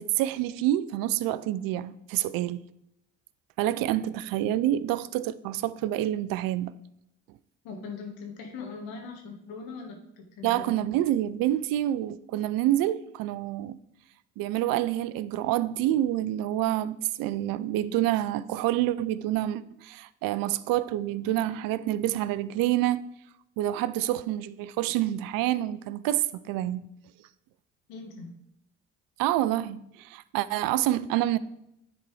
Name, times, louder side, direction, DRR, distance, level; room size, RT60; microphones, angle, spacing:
voice 1, 0.0-2.6 3.6-6.7 10.4-13.8 14.4-23.0 23.6-26.8 29.2-31.4, right 13 dB, 70° right, 0.5 m, -27 dB
voice 2, 7.6-10.8 27.9-28.3, left 4 dB, 75° left, 1.6 m, -40 dB
9.9 x 4.1 x 4.8 m
hypercardioid pair, 50°, 36 cm